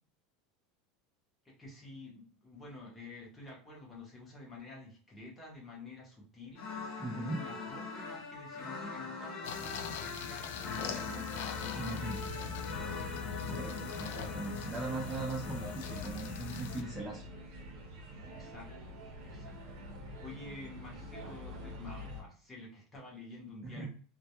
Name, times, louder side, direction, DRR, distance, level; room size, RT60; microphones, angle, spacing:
voice 1, 1.4-12.6 18.2-19.9 20.2-23.9, left 2 dB, 10° left, -3 dB, 0.8 m, -50 dB
sound 1, 6.5-17.0, left 4 dB, 50° left, 0.7 m, -43 dB
voice 2, 7.0-7.4 11.8-12.2 13.5-17.2 23.6-23.9, right 3 dB, 10° right, -2 dB, 0.3 m, -39 dB
sound 2, 9.4-16.8, left 6 dB, 80° left, 0.3 m, -41 dB
sound 3, 12.1-22.2, equal, 70° right, 0.7 m, -47 dB
2.2 x 2.1 x 2.8 m, 0.43 s
supercardioid pair, 175°, 0 cm